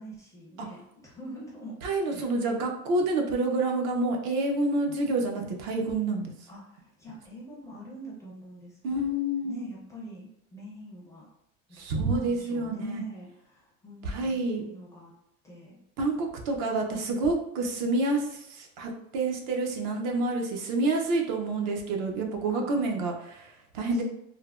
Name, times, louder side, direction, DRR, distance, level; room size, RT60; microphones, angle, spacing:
voice 1, 0.0-1.8 2.0-2.3 6.5-9.1 9.4-11.3 11.7-15.1 15.4-15.8 22.5-22.7 23.9-24.0, equal, 10° left, -5 dB, 0.4 m, -44 dB
voice 2, 1.8-6.3 8.8-9.7 11.7-13.0 14.0-14.7 16.0-24.0, right 2 dB, 55° right, 2 dB, 0.5 m, -28 dB
3.2 x 2.0 x 2.3 m, 0.79 s
cardioid pair, 165°, 32 cm